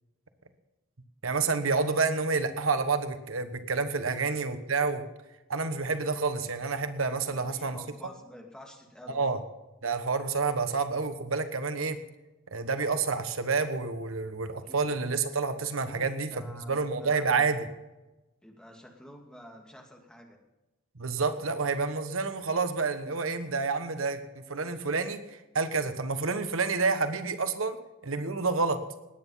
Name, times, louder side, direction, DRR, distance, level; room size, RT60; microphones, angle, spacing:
voice 1, 1.2-5.0 5.5-7.8 9.1-9.4 9.8-12.0 12.5-17.6 21.0-27.8 28.0-28.8, right 4 dB, 85° right, 10 dB, 1.3 m, -29 dB
voice 2, 7.3-9.2 14.7-15.0 15.9-17.5 18.4-20.4, equal, 5° left, 1 dB, 2.4 m, -49 dB
19.0 x 9.5 x 5.6 m, 1.0 s
head